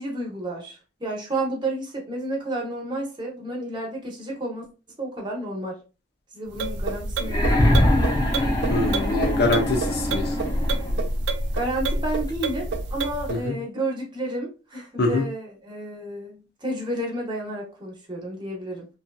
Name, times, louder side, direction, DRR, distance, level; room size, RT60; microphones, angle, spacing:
voice 1, 0.0-4.7 5.0-5.8 6.3-8.2 11.5-18.9, right 1 dB, 25° right, -1 dB, 0.8 m, -31 dB
sound 1, 6.5-13.4, right 2 dB, 70° right, 0.4 m, -28 dB
sound 2, 7.2-11.1 12.3-12.4, left 1 dB, 25° left, 0.5 m, -23 dB
voice 2, 8.7-10.2 13.3-13.5 15.0-15.2, left 2 dB, 60° left, 2 dB, 0.7 m, -24 dB
2.7 x 2.3 x 2.2 m, 0.33 s
head